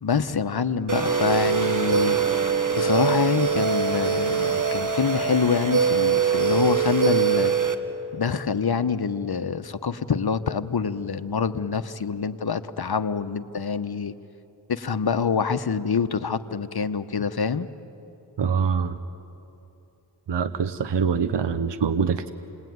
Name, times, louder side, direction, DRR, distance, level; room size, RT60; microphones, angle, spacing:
voice 1, 0.0-2.2 2.8-7.5 8.1-14.1 14.7-17.7, left 6 dB, 55° left, 11 dB, 1.0 m, -26 dB
sound 1, 0.9-7.7, right 6 dB, 40° right, 1.7 m, -23 dB
voice 2, 18.4-19.0 20.3-22.3, right 6 dB, 60° right, 10 dB, 0.9 m, -24 dB
29.0 x 20.5 x 9.4 m, 3.0 s
cardioid pair, 50°, 46 cm